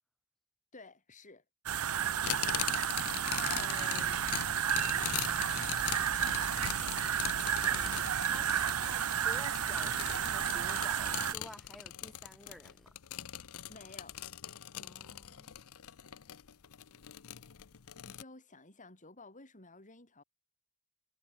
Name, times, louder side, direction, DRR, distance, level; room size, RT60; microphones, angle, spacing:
voice 1, 0.7-1.4 13.7-14.2 18.1-20.2, left 3 dB, 35° left, 6.2 m, -53 dB
sound 1, 1.7-11.3, right 9 dB, 70° right, 0.8 m, -32 dB
voice 2, 1.9-2.9 3.2-4.2 7.6-12.9 14.8-15.6, equal, ahead, 3.8 m, -52 dB
sound 2, 2.2-18.2, left 11 dB, 70° left, 0.7 m, -41 dB
head